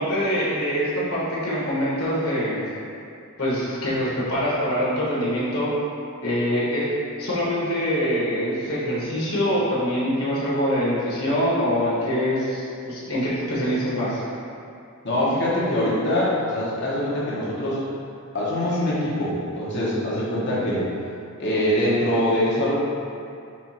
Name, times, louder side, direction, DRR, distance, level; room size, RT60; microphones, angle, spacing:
voice 1, 0.0-2.7 3.4-5.7 6.2-6.9 7.2-14.2, equal, 80° left, -8 dB, 1.2 m, -24 dB
voice 2, 15.0-17.8 18.3-20.9 21.4-22.7, left 1 dB, 55° left, -7 dB, 1.0 m, -23 dB
4.4 x 2.4 x 4.2 m, 2.5 s
head